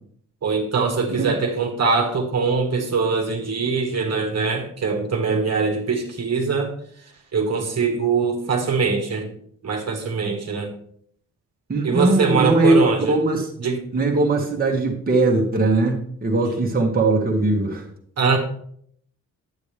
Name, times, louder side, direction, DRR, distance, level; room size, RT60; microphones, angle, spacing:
voice 1, 0.4-6.7 7.3-9.3 9.6-10.7 11.8-13.2 13.6-13.8 18.2-18.4, right 4 dB, 50° right, 1 dB, 1.5 m, -22 dB
voice 2, 11.7-13.5 13.9-17.8, right 2 dB, 25° right, -1 dB, 1.5 m, -20 dB
10.5 x 8.6 x 3.4 m, 0.65 s
wide cardioid pair, 140°, 33 cm